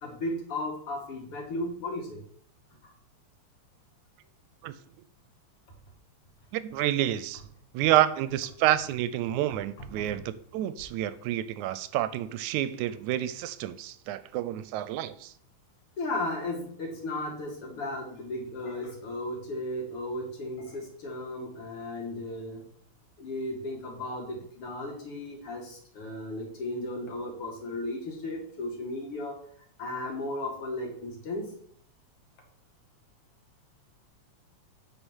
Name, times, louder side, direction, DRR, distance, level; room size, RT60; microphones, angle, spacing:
voice 1, 0.0-2.2 2.8-2.9 10.0-10.1 12.8-12.9 16.0-22.6 23.2-29.4 29.8-31.5, left 1 dB, 50° left, 1 dB, 2.8 m, -35 dB
voice 2, 6.5-7.4 7.7-15.3, right 13 dB, 90° right, 14 dB, 2.0 m, -28 dB
8.1 x 5.8 x 6.3 m, 0.62 s
omnidirectional pair, 3.3 m